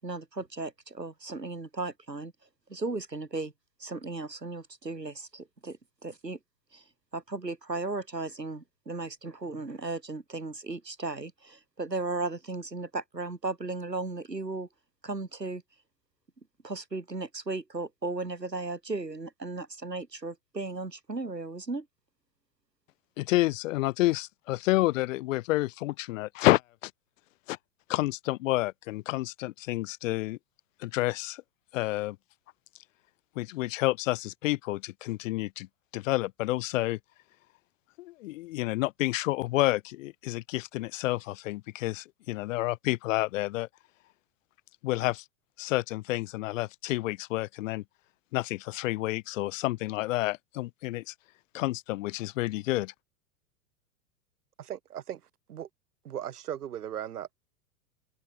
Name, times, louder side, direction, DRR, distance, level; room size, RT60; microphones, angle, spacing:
voice 1, 0.0-2.3 2.7-3.5 3.8-5.8 6.0-6.4 6.7-6.8 7.1-14.7 15.0-15.6 16.6-21.9, right 3 dB, 85° right, 6.6 m, -36 dB
voice 2, 23.2-26.9 27.5-27.6 27.9-30.4 30.8-31.4 31.7-32.2 33.3-35.7 35.9-37.0 38.0-43.7 44.8-45.2 45.6-47.8 48.3-51.1 51.5-52.9, left 18 dB, 50° left, 1.6 m, -29 dB
voice 3, 54.6-55.2 55.5-55.7 56.0-57.3, right 10 dB, 65° right, 3.0 m, -37 dB
figure-of-eight pair, 90°, 48 cm